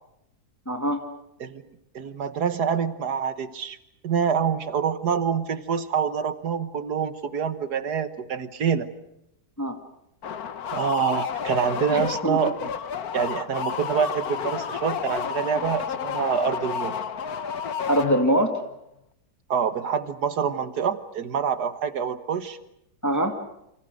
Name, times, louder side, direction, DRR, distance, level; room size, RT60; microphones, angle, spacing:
voice 1, 0.7-1.0 9.6-9.8 11.9-12.4 17.9-18.6 23.0-23.3, right 1 dB, 10° left, 5 dB, 1.8 m, -23 dB
voice 2, 1.4-3.8 4.0-8.9 10.7-12.6 13.1-16.9 19.5-22.6, right 7 dB, 70° right, 12 dB, 1.9 m, -26 dB
sound 1, 10.2-18.5, left 7 dB, 65° left, 1.6 m, -31 dB
28.5 x 25.5 x 6.5 m, 0.81 s
omnidirectional pair, 1.8 m